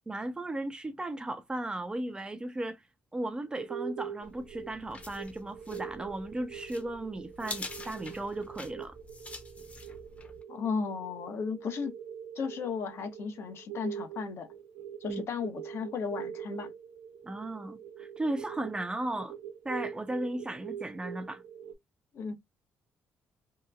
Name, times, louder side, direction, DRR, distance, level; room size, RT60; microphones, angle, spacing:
voice 1, 0.1-2.8 3.1-9.0 15.1-15.2 17.2-19.4 19.6-21.4, right 1 dB, 15° right, 0.5 m, -36 dB
sound 1, 3.4-21.7, right 9 dB, 90° right, 0.6 m, -44 dB
sound 2, 4.2-10.4, left 2 dB, 30° left, 0.8 m, -46 dB
voice 2, 10.5-11.9 12.4-14.5 15.0-16.7 22.1-22.3, left 5 dB, 60° left, 0.8 m, -35 dB
2.8 x 2.3 x 2.3 m
cardioid pair, 80°, 5 cm